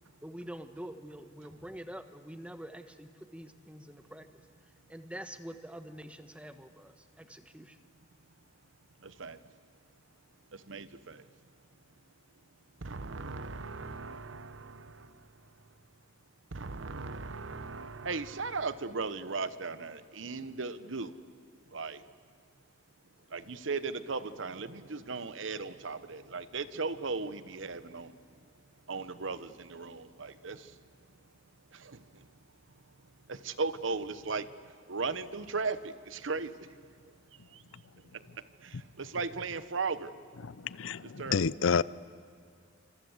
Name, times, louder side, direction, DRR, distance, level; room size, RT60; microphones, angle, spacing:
voice 1, 0.2-4.4 4.9-7.8, right 1 dB, 5° right, 1.3 m, -46 dB
voice 2, 9.0-9.4 10.5-11.2 12.8-15.1 16.5-21.1 21.7-22.0 23.3-28.1 28.9-30.7 31.7-32.2 33.3-34.5 34.9-36.7 37.5-37.6 38.6-40.1 41.2-41.4, right 4 dB, 75° right, 1.0 m, -37 dB
voice 3, 40.4-41.8, left 5 dB, 85° left, 0.6 m, -29 dB
27.5 x 26.0 x 8.1 m
head